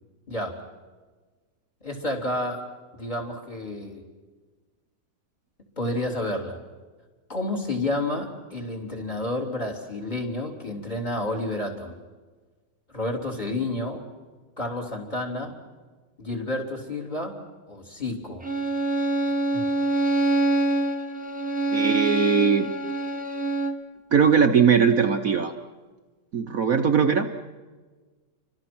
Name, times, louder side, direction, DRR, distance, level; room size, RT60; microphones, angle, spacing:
voice 1, 0.3-0.6 1.8-2.7 2.9-4.0 5.8-6.6 7.3-12.0 12.9-14.0 14.6-15.6 16.2-17.4 17.7-18.5 19.5-19.7, left 1 dB, 25° left, 3 dB, 3.6 m, -30 dB
Bowed string instrument, 18.4-23.9, right 2 dB, 5° right, 1.4 m, -25 dB
voice 2, 21.7-22.7 24.1-25.5 26.3-27.3, right 7 dB, 55° right, 4 dB, 1.3 m, -20 dB
30.0 x 25.0 x 6.1 m, 1.4 s
omnidirectional pair, 1.9 m